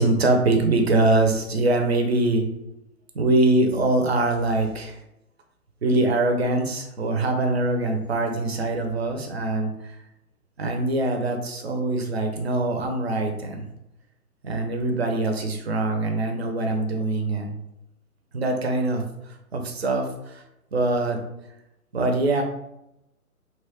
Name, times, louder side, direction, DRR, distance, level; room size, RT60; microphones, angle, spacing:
voice 1, 0.0-2.4 3.1-5.0 5.8-9.9 10.6-13.7 14.4-17.5 18.3-19.0 19.5-20.4 20.7-21.2 21.9-22.4, right 2 dB, 50° right, 4 dB, 0.5 m, -23 dB
2.9 x 2.2 x 2.8 m, 0.87 s
figure-of-eight pair, 130°, 43 cm